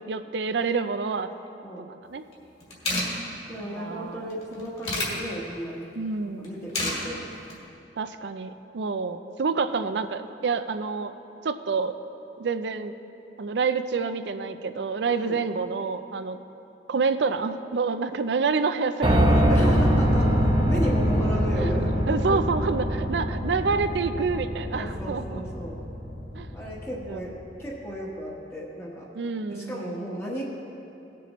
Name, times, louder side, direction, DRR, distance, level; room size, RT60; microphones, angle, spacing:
voice 1, 0.1-1.3 1.9-2.2 3.5-4.7 6.0-6.5 8.0-11.1 11.4-11.9 12.4-12.9 13.4-16.4 16.9-19.6 19.9-20.0 21.6-25.4 26.4-26.5 27.0-27.2 29.1-29.9, right 4 dB, 75° right, 11 dB, 0.4 m, -28 dB
sound 1, 2.3-2.4 2.6-3.1 4.3-5.1 6.4-7.0 7.3-7.6, left 2 dB, 35° left, 2.1 m, -28 dB
voice 2, 3.5-5.8 6.4-7.2 15.1-15.4 19.5-22.4 24.7-25.8 26.5-29.1 29.5-30.4, equal, 15° left, -5 dB, 1.2 m, -34 dB
Piano, 19.0-27.0, equal, 30° right, 0.7 m, -24 dB
18.0 x 6.9 x 3.1 m, 2.9 s
head